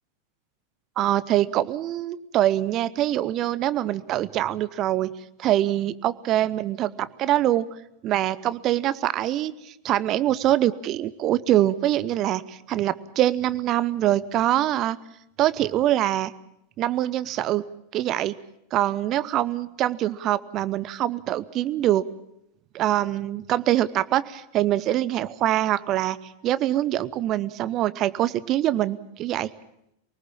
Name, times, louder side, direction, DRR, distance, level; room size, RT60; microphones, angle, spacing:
voice 1, 1.0-5.1 5.4-7.7 8.0-15.0 15.4-16.3 16.8-17.6 17.9-18.3 18.7-22.1 22.7-26.2 26.4-29.5, right 13 dB, 35° right, 17 dB, 0.8 m, -24 dB
25.0 x 19.0 x 7.2 m, 0.78 s
figure-of-eight pair, 90°, 0 cm